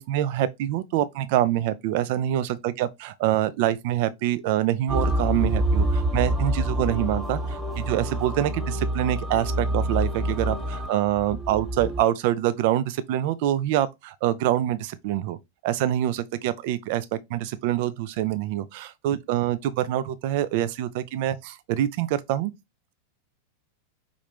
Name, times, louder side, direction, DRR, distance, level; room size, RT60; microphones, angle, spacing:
voice 1, 0.0-15.4 15.6-22.5, right 12 dB, 50° right, 0.5 m, -25 dB
sound 1, 4.9-12.0, right 1 dB, ahead, 1.2 m, -27 dB
5.2 x 2.5 x 3.4 m
figure-of-eight pair, 90°, 0 cm